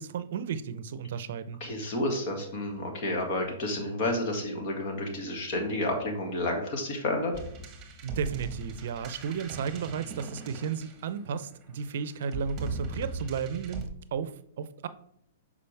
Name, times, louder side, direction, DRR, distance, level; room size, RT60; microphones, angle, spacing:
voice 1, 0.0-1.6 8.0-14.9, right 6 dB, 65° right, 13 dB, 0.5 m, -34 dB
voice 2, 1.6-7.3, left 1 dB, 50° left, 2 dB, 1.9 m, -30 dB
sound 1, 7.3-11.4 12.2-13.9, right 3 dB, 25° right, 1.2 m, -39 dB
6.8 x 4.9 x 3.4 m, 0.69 s
hypercardioid pair, 135°, 0 cm